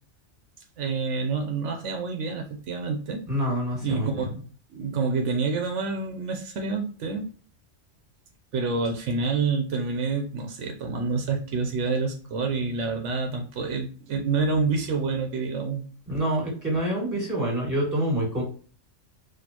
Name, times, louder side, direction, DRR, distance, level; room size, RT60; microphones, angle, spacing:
voice 1, 0.8-3.2 3.8-4.3 4.7-7.3 8.5-15.8, right 4 dB, 80° right, 4 dB, 1.0 m, -27 dB
voice 2, 3.3-4.3 16.1-18.4, right 1 dB, 15° right, -3 dB, 1.7 m, -26 dB
4.2 x 2.7 x 2.9 m, 0.42 s
omnidirectional pair, 1.2 m